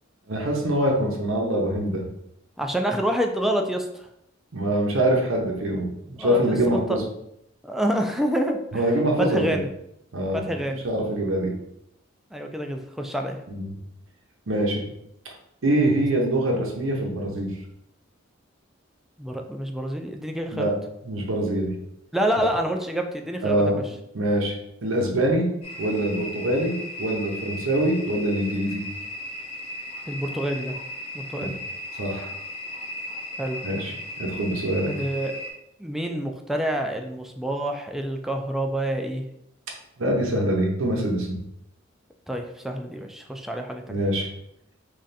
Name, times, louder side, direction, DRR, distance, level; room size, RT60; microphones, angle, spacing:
voice 1, 0.3-2.0 4.5-7.0 8.7-9.6 10.1-10.4 10.8-11.5 13.5-13.7 14.5-14.8 15.6-17.5 20.5-20.7 21.0-21.7 23.4-23.8 24.1-24.5 24.8-25.5 25.8-28.8 31.4-31.5 32.0-32.3 33.6-34.9 40.0-41.4 43.9-44.3, right 1 dB, 75° right, 0 dB, 0.8 m, -24 dB
voice 2, 2.6-4.1 6.2-7.0 7.6-8.8 9.2-9.7 10.3-10.8 12.3-13.4 19.2-20.7 22.1-23.8 30.1-30.8 31.1-31.5 33.4-33.6 34.9-35.4 35.8-39.2 42.3-44.0, right 1 dB, ahead, 3 dB, 0.3 m, -27 dB
sound 1, 25.6-35.5, left 1 dB, 30° left, 0.7 m, -36 dB
3.3 x 2.5 x 4.0 m, 0.79 s
head